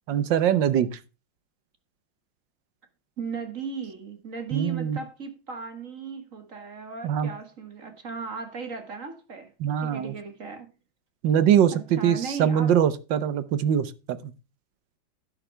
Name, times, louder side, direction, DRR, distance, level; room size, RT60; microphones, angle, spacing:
voice 1, 0.1-0.9 4.5-5.0 7.0-7.3 9.6-10.1 11.2-14.3, right 9 dB, 70° right, 1.6 m, -23 dB
voice 2, 3.2-9.5 9.8-10.7 11.7-12.8, right 5 dB, 40° right, 2.2 m, -36 dB
11.0 x 10.0 x 3.3 m
omnidirectional pair, 2.2 m